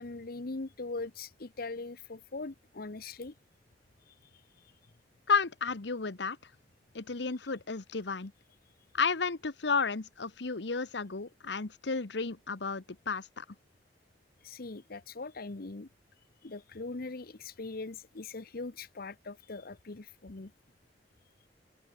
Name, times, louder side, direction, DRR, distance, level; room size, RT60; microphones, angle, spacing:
voice 1, 0.0-3.3 4.1-4.7 14.4-15.9 16.4-20.5, left 3 dB, 55° left, 1.0 m, -41 dB
voice 2, 5.3-6.4 6.9-8.3 8.9-13.4, left 4 dB, 75° left, 1.1 m, -32 dB
open air
head